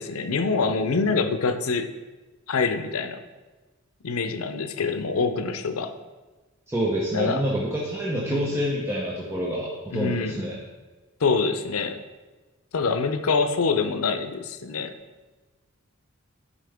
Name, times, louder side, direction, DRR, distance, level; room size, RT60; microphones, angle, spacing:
voice 1, 0.0-1.9 2.5-3.2 4.0-5.9 7.1-7.4 8.3-8.5 9.9-10.4 11.2-12.0 12.7-14.9, left 4 dB, 90° left, 9 dB, 0.6 m, -25 dB
voice 2, 6.7-10.6, equal, 10° right, -5 dB, 0.9 m, -27 dB
11.5 x 5.0 x 3.5 m, 1.2 s
head